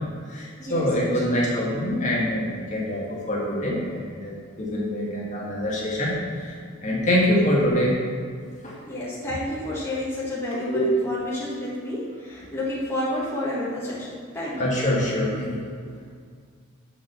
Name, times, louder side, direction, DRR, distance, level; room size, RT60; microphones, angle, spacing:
voice 1, 0.3-6.1 6.4-6.5 6.8-8.0 8.6-8.8 10.5-10.9 14.6-15.7, left 1 dB, 35° left, -5 dB, 1.6 m, -25 dB
voice 2, 1.1-1.6 8.9-14.6, left 1 dB, 10° left, -8 dB, 1.4 m, -30 dB
6.4 x 5.0 x 6.9 m, 2.1 s
head